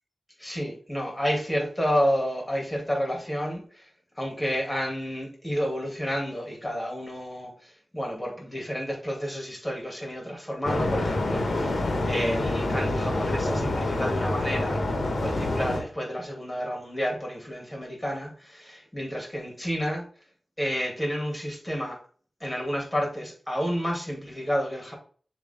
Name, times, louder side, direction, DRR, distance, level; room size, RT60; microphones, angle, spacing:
voice 1, 0.4-3.8 4.2-14.9 15.2-20.0 20.6-22.0 22.4-24.9, equal, 15° left, 3.0 m, -30 dB
sound 1, 10.6-15.8, left 2 dB, 80° left, 1.7 m, -27 dB
7.0 x 3.5 x 3.8 m
wide cardioid pair, 65°, 0 cm